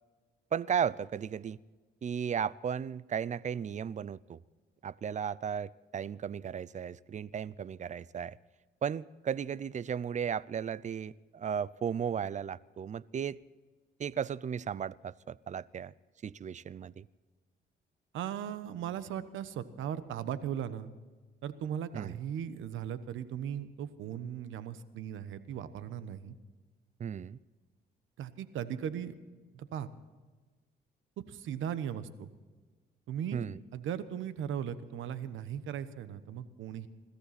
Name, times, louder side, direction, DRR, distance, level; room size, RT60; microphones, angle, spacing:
voice 1, 0.5-1.6 2.0-4.4 4.8-8.4 8.8-13.4 14.0-15.9 16.2-17.1 21.9-22.2 27.0-27.4 33.3-33.6, right 8 dB, 35° right, 21 dB, 0.5 m, -35 dB
voice 2, 18.1-20.9 21.4-26.4 28.2-29.1 29.5-29.9 31.2-32.3 33.1-33.4 33.7-36.9, right 9 dB, 80° right, 13 dB, 1.1 m, -38 dB
21.5 x 15.0 x 4.2 m, 1.3 s
cardioid pair, 90°, 20 cm